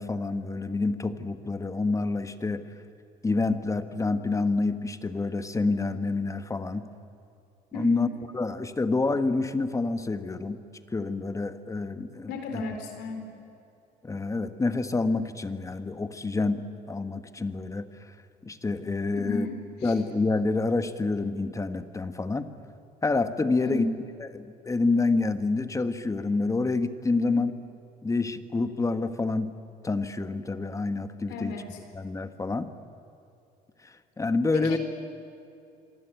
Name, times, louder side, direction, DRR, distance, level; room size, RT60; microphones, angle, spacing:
voice 1, 0.0-2.6 3.2-6.9 7.7-8.1 8.3-10.6 10.9-12.6 14.0-17.9 18.4-19.5 19.8-22.5 23.0-23.9 24.2-27.5 28.0-29.5 29.8-31.5 31.9-32.7 33.8-34.8, left 3 dB, 20° left, 10 dB, 1.3 m, -28 dB
voice 2, 7.7-8.0 12.3-13.3 19.1-19.6 19.8-19.9 23.6-23.9 27.2-27.4 31.3-31.8 34.5-34.8, left 4 dB, 90° left, 5 dB, 4.2 m, -33 dB
26.0 x 23.5 x 9.1 m, 2.6 s
cardioid pair, 110°, 17 cm